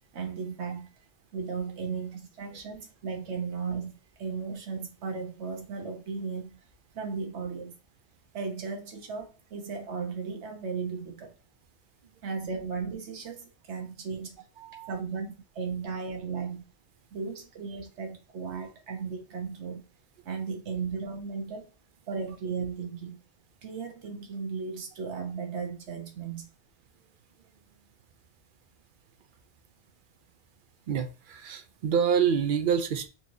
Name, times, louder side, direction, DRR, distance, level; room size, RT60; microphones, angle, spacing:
voice 1, 0.1-0.9 1.3-6.6 6.9-7.7 8.3-11.3 12.2-14.4 14.9-16.6 17.1-19.8 20.2-21.7 22.1-23.2 23.6-26.5, right 5 dB, 90° right, 1.2 m, -35 dB
voice 2, 14.6-15.0 30.9-33.1, right 7 dB, 60° right, 0.6 m, -27 dB
4.2 x 2.9 x 2.6 m
omnidirectional pair, 1.1 m